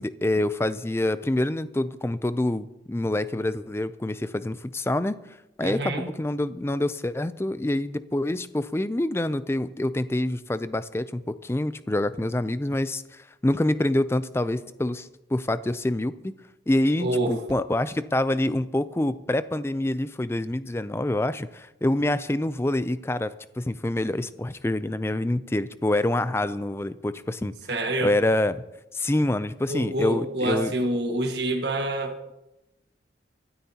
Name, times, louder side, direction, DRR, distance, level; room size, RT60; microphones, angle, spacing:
voice 1, 0.0-5.2 5.6-16.3 16.7-27.6 28.0-28.6 28.9-30.7, left 1 dB, 15° left, 14 dB, 0.4 m, -26 dB
voice 2, 5.6-6.1 17.0-17.3 27.7-28.1 29.7-32.2, right 1 dB, 60° right, 2 dB, 1.6 m, -27 dB
24.0 x 12.5 x 2.9 m, 0.95 s
head